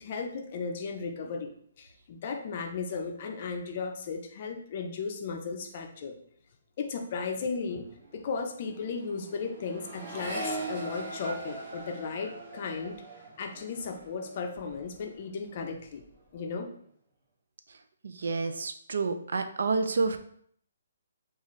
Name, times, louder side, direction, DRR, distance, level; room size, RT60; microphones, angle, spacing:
voice 1, 0.0-1.5 1.8-6.2 6.8-7.9 8.1-13.0 13.4-16.0 16.3-16.7, left 5 dB, 35° left, 4 dB, 0.4 m, -35 dB
Accelerating revving vroom, 7.4-7.5 7.7-15.2 15.5-16.1, right 2 dB, 25° right, 1.1 m, -41 dB
voice 2, 18.0-20.2, right 4 dB, 75° right, 8 dB, 0.4 m, -29 dB
3.9 x 2.4 x 3.0 m, 0.63 s
hypercardioid pair, 170°, 0 cm